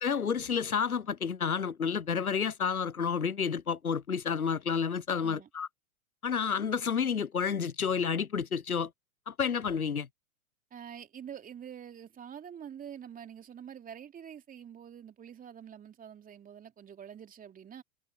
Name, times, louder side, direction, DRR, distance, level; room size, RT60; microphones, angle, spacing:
voice 1, 0.0-5.7 6.2-8.9 9.3-10.1, left 6 dB, 85° left, 0.7 m, -30 dB
voice 2, 10.7-17.8, right 8 dB, 20° right, 2.9 m, -46 dB
figure-of-eight pair, 95°, 42 cm